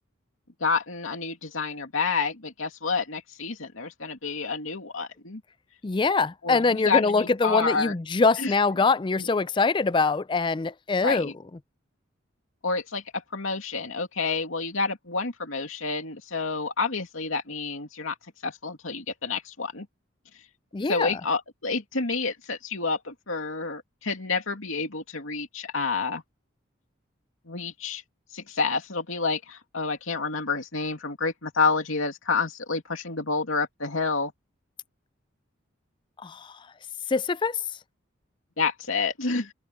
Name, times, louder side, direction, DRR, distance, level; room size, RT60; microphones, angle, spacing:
voice 1, 0.6-5.4 6.4-8.0 8.4-8.5 11.0-11.3 12.6-18.1 18.4-19.9 20.9-26.2 27.5-28.0 28.3-34.3 38.6-39.5, left 4 dB, 80° left, 2.6 m, -29 dB
voice 2, 5.8-11.3 20.7-21.1 36.2-36.6 37.1-37.6, left 4 dB, 25° left, 0.4 m, -24 dB
head